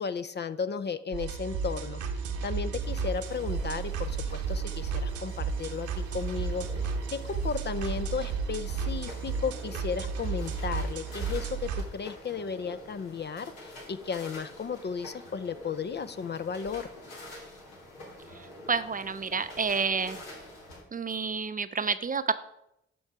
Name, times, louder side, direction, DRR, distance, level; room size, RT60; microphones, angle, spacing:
voice 1, 0.0-2.0 2.4-6.7 7.1-16.9, left 6 dB, 35° left, 13 dB, 0.5 m, -34 dB
sound 1, 1.1-11.8, right 5 dB, 70° right, 1.0 m, -33 dB
sound 2, 2.8-20.8, left 1 dB, 85° left, 1.7 m, -48 dB
voice 2, 18.7-20.2 20.9-22.3, right 5 dB, 25° right, 12 dB, 0.5 m, -29 dB
11.5 x 4.4 x 4.7 m, 0.83 s
hypercardioid pair, 40°, 31 cm